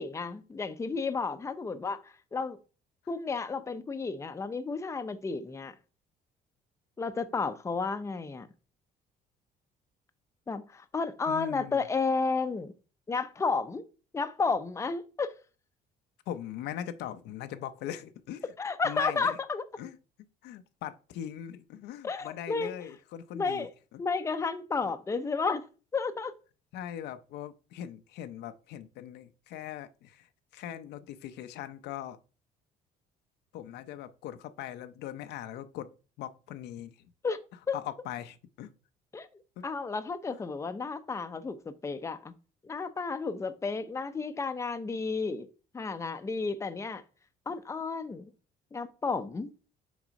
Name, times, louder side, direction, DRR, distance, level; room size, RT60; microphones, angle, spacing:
voice 1, 0.0-2.6 3.1-5.7 7.0-8.5 10.5-12.7 13.1-13.8 14.1-15.3 18.6-19.6 22.0-22.7 23.3-23.7 24.0-25.7 25.9-26.3 37.2-37.4 37.7-37.8 39.1-39.3 39.6-42.3 42.6-45.5 45.7-47.0 47.5-48.3 48.7-49.5, left 4 dB, 15° left, 0.6 m, -32 dB
voice 2, 11.3-11.8 16.3-18.5 18.8-19.4 19.8-20.0 20.4-23.7 23.9-24.0 24.8-24.9 26.7-32.2 33.5-35.9 36.2-37.1 37.7-38.7 39.6-39.7 40.3-40.4, left 11 dB, 80° left, 0.6 m, -41 dB
6.2 x 3.6 x 5.2 m
cardioid pair, 110°, 17 cm